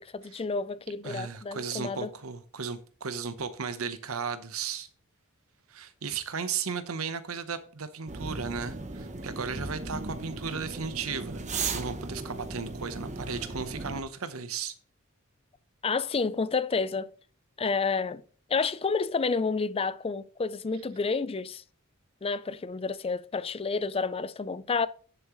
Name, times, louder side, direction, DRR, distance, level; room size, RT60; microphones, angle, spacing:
voice 1, 0.1-2.1 15.8-17.1 17.6-18.2 18.5-21.6 22.2-24.9, left 4 dB, 25° left, 0.4 m, -30 dB
voice 2, 1.0-4.9 5.7-14.7, right 5 dB, 85° right, 0.9 m, -35 dB
sound 1, 8.1-14.0, right 3 dB, 35° right, 1.0 m, -37 dB
10.5 x 7.3 x 3.1 m
head